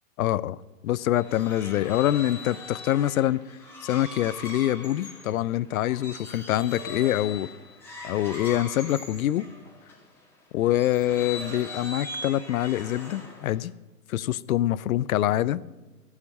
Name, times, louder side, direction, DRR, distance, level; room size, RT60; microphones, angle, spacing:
voice 1, 0.2-0.6 0.8-3.4 3.8-7.5 8.0-9.5 10.5-13.7 14.1-15.6, left 13 dB, 60° left, 19 dB, 0.5 m, -25 dB
sound 1, 0.9-10.0 10.7-13.7, left 2 dB, 5° left, 2.1 m, -41 dB
15.0 x 7.3 x 6.5 m, 1.2 s
hypercardioid pair, 140°, 47 cm